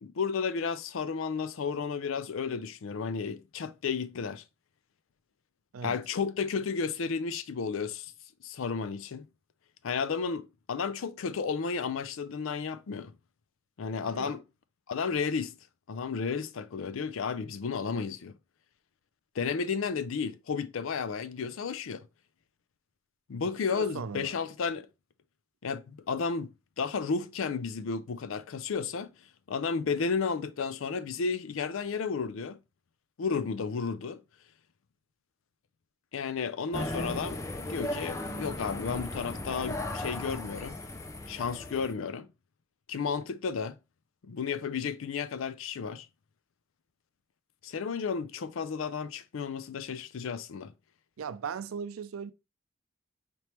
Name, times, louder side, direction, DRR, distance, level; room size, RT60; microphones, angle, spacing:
voice 1, 0.0-4.4 5.8-8.1 8.4-9.3 9.8-13.1 13.8-14.4 14.9-15.6 15.9-18.3 19.4-22.0 23.3-24.9 25.6-26.5 26.8-29.1 29.5-32.6 33.2-34.2 36.1-37.4 37.7-40.8 41.3-42.3 42.9-43.8 44.2-46.1 47.6-50.7, left 5 dB, 75° left, 0.4 m, -32 dB
voice 2, 14.0-14.4 23.7-24.4 51.2-52.3, right 6 dB, 90° right, 0.4 m, -38 dB
sound 1, 36.7-41.9, left 1 dB, 15° left, 0.4 m, -36 dB
4.3 x 3.3 x 3.0 m
head